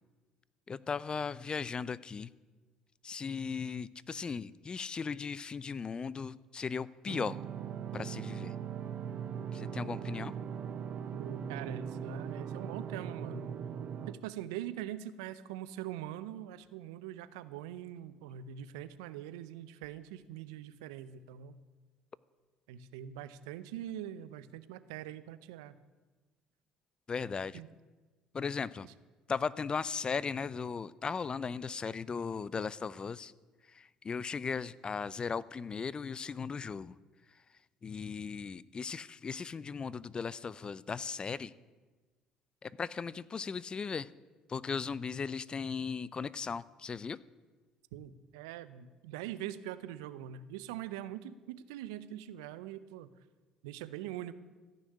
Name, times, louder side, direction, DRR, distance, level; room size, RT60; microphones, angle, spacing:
voice 1, 0.7-2.3 3.0-7.4 7.9-8.5 9.5-10.3 27.1-27.6 28.3-28.9 29.3-33.3 33.7-37.0 37.8-41.5 42.6-44.1 44.5-47.2, left 5 dB, 35° left, 21 dB, 0.5 m, -37 dB
sound 1, 7.1-14.1, right 8 dB, 50° right, 0.8 m, -40 dB
voice 2, 11.1-13.5 14.1-21.6 22.7-25.8 27.5-27.7 28.8-28.9 47.9-53.1 53.6-54.4, right 11 dB, 85° right, 15 dB, 0.6 m, -43 dB
14.5 x 6.3 x 9.8 m, 1.3 s
hypercardioid pair, 65°, 3 cm